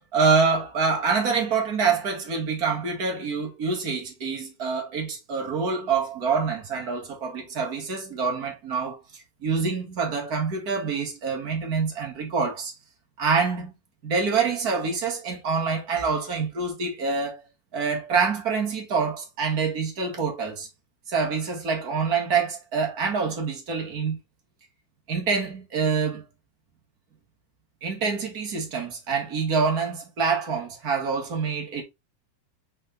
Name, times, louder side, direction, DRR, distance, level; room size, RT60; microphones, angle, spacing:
voice 1, 0.0-9.0 9.4-12.7 13.2-13.7 14.0-17.4 17.7-20.7 21.1-24.2 25.1-26.2 27.8-31.8, right 5 dB, 45° right, 1.3 m, -26 dB
5.6 x 4.3 x 3.9 m
omnidirectional pair, 3.9 m